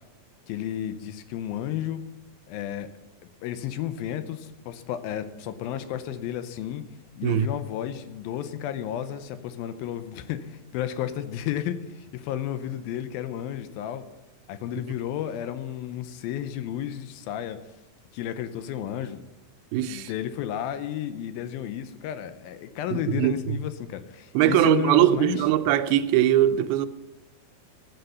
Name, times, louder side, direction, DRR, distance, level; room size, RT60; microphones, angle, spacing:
voice 1, 0.5-2.0 2.5-2.9 3.4-6.8 7.2-14.0 14.5-17.6 18.1-19.2 19.9-25.4, left 10 dB, 85° left, 2.6 m, -32 dB
voice 2, 19.7-20.1 22.9-23.6 24.3-26.9, right 12 dB, 85° right, 2.6 m, -21 dB
15.0 x 8.2 x 5.6 m
omnidirectional pair, 4.3 m